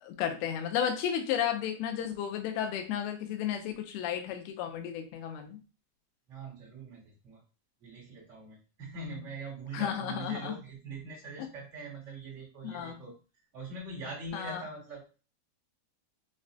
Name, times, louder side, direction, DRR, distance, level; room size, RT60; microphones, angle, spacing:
voice 1, 0.0-5.6 9.7-10.6 11.4-11.5 12.6-13.0 14.3-14.6, left 9 dB, 85° left, 5 dB, 2.5 m, -33 dB
voice 2, 6.3-7.4 7.8-13.1 13.5-15.1, right 3 dB, 55° right, -6 dB, 0.8 m, -43 dB
5.9 x 2.1 x 2.6 m, 0.34 s
omnidirectional pair, 4.4 m